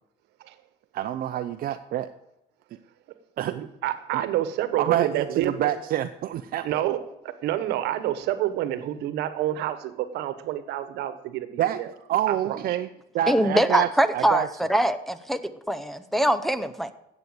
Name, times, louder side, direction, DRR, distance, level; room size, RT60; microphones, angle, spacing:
voice 1, 0.9-2.1 3.4-3.5 4.1-4.2 4.8-6.8 11.6-11.8 12.1-12.9 13.1-14.5, right 11 dB, 60° right, 9 dB, 0.7 m, -27 dB
voice 2, 3.5-5.7 6.6-7.0 7.2-11.9 12.3-12.8, right 13 dB, 85° right, 12 dB, 1.2 m, -28 dB
voice 3, 13.3-14.4 14.7-16.9, right 1 dB, ahead, 8 dB, 0.8 m, -23 dB
12.5 x 8.2 x 7.9 m, 0.88 s
cardioid pair, 110°, 17 cm